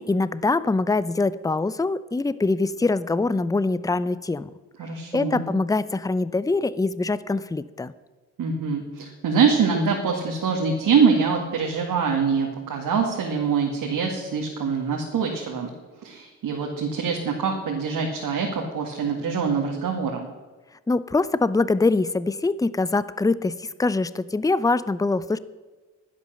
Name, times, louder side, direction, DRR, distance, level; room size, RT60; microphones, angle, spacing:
voice 1, 0.0-4.5 5.1-7.9 20.9-25.4, left 3 dB, 10° left, 17 dB, 0.6 m, -23 dB
voice 2, 4.8-5.4 8.4-15.7 16.0-20.3, right 5 dB, 60° right, 0 dB, 2.1 m, -24 dB
11.0 x 10.5 x 6.6 m, 1.3 s
hypercardioid pair, 45°, 38 cm